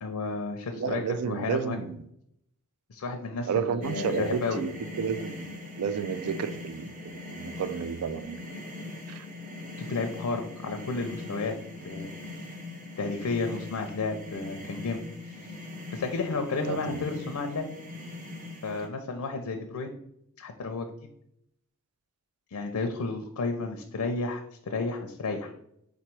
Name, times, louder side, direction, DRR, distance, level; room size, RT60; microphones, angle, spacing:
voice 1, 0.0-1.8 2.9-4.6 9.8-11.6 11.8-12.1 13.0-15.0 15.3-15.5 15.9-17.7 18.6-19.9 20.4-20.9 22.5-25.5, left 3 dB, 85° left, 0.5 m, -32 dB
voice 2, 0.7-2.0 3.4-6.9 7.3-8.4 9.1-9.3 16.7-17.0, right 6 dB, 85° right, 0.4 m, -31 dB
sound 1, 3.8-18.9, left 2 dB, 35° right, 0.7 m, -41 dB
3.9 x 3.0 x 4.5 m
head